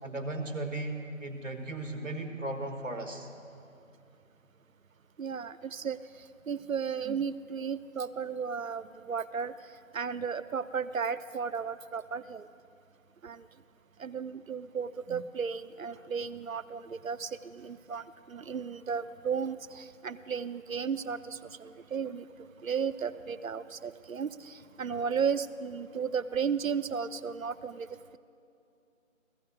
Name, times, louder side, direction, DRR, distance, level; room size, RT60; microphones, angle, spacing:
voice 1, 0.0-3.3 16.0-16.1, right 2 dB, 70° right, 6 dB, 1.7 m, -36 dB
voice 2, 5.2-6.0 6.5-9.5 9.9-12.5 13.2-13.5 14.0-22.3 22.6-27.9, right 6 dB, 85° right, 16 dB, 0.6 m, -34 dB
30.0 x 14.5 x 2.2 m, 2.6 s
figure-of-eight pair, 160°, 39 cm